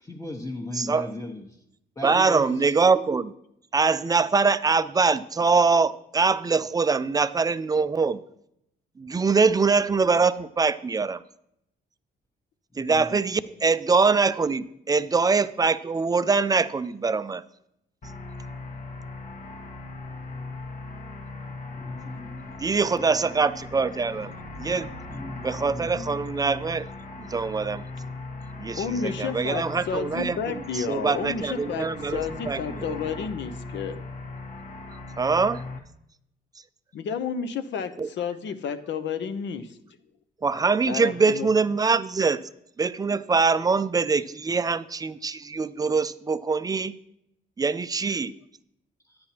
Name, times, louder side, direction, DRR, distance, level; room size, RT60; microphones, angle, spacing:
voice 1, 0.0-1.4 2.0-2.7 12.7-13.2 21.7-22.5 25.1-26.2 49.1-49.2, left 2 dB, 15° left, -4 dB, 1.2 m, -37 dB
voice 2, 0.7-1.1 2.0-3.3 3.7-8.2 9.0-11.2 12.8-17.4 22.6-24.9 25.4-26.9 27.3-27.8 28.6-32.2 32.5-32.9 35.2-35.6 38.0-38.1 40.4-42.4 42.8-46.9 47.6-48.3, right 4 dB, 20° right, 15 dB, 0.4 m, -23 dB
sound 1, 18.0-35.8, left 3 dB, 40° left, 1.2 m, -39 dB
voice 3, 28.7-34.0 36.9-39.8 40.9-41.5, left 6 dB, 65° left, 9 dB, 0.8 m, -31 dB
9.8 x 9.4 x 2.9 m, 0.78 s
cardioid pair, 90°, 20 cm